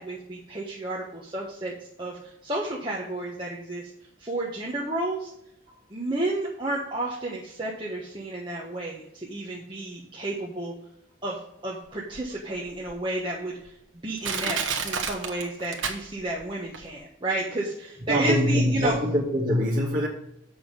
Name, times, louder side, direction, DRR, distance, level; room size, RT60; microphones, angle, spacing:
voice 1, 0.0-3.9 4.2-5.3 5.9-10.7 11.2-13.7 14.0-19.0, right 2 dB, 25° right, -4 dB, 1.3 m, -31 dB
Crushing, 12.1-12.2 12.9-13.0 13.7-13.8 14.2-16.4 16.7-16.8, right 5 dB, 70° right, 1.3 m, -30 dB
voice 2, 18.1-20.1, equal, 45° right, -2 dB, 2.4 m, -23 dB
7.4 x 6.0 x 7.1 m, 0.79 s
head